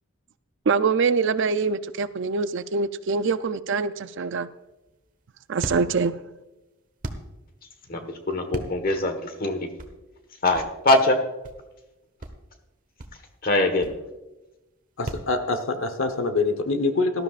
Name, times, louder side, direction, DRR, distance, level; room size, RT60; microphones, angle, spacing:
voice 1, 0.7-4.5 5.5-6.2, right 4 dB, 55° right, 13 dB, 0.4 m, -24 dB
sound 1, 4.5-15.3, right 1 dB, 35° right, 1.1 m, -39 dB
voice 2, 8.3-9.6 10.4-11.1 13.4-13.9, left 2 dB, 40° left, 7 dB, 1.4 m, -22 dB
voice 3, 15.0-17.2, left 3 dB, 60° left, 8 dB, 1.1 m, -25 dB
18.0 x 12.5 x 2.5 m, 1.0 s
head